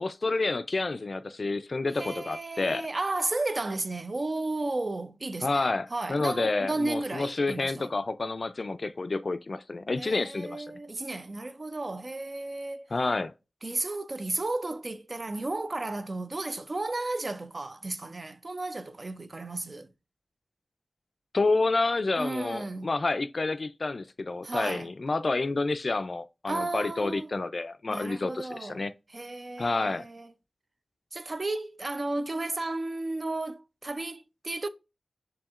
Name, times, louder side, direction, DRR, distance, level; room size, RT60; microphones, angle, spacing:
voice 1, 0.0-2.9 5.4-10.7 12.9-13.3 21.3-28.9 29.6-30.1, left 3 dB, 60° left, 0.3 m, -29 dB
voice 2, 2.0-7.9 10.0-12.9 13.6-19.9 22.2-22.9 24.4-24.9 26.5-27.3 27.9-28.8 29.1-30.3 31.1-34.7, right 2 dB, 50° right, 0.5 m, -33 dB
7.0 x 2.8 x 2.4 m
wide cardioid pair, 65°, 0 cm